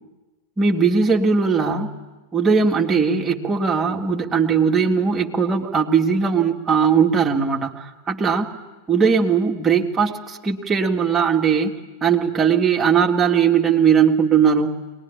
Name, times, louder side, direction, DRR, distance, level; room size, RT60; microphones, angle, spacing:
voice 1, 0.6-1.9 2.3-8.5 8.9-11.7 12.0-14.7, right 6 dB, 20° right, 1 dB, 2.1 m, -19 dB
22.0 x 20.5 x 9.9 m, 1.2 s
figure-of-eight pair, 90°, 0 cm